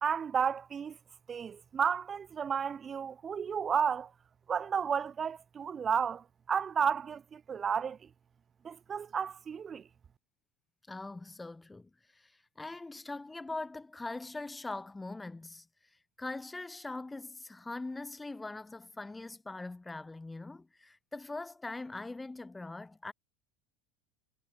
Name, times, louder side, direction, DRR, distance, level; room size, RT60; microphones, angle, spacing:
voice 1, 0.0-1.0 1.3-4.1 4.5-8.0 8.6-9.9, right 7 dB, 30° right, 0.7 m, -32 dB
voice 2, 10.9-15.7 16.2-23.1, left 2 dB, 10° left, 0.6 m, -42 dB
supercardioid pair, 110°, 0 cm